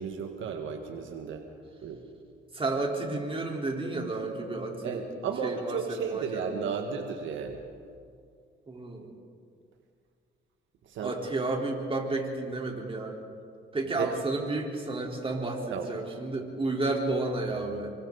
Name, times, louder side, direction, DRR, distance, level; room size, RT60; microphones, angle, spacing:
voice 1, 0.0-1.4 1.8-2.0 4.8-7.6 10.9-11.1 14.0-14.1 15.7-15.9, right 6 dB, 75° right, 4 dB, 1.7 m, -33 dB
voice 2, 2.5-5.0 5.4-6.8 8.7-9.1 11.0-13.2 13.7-17.9, right 2 dB, 25° right, 0 dB, 4.1 m, -32 dB
28.5 x 24.0 x 4.1 m, 2.2 s
cardioid pair, 90°, 20 cm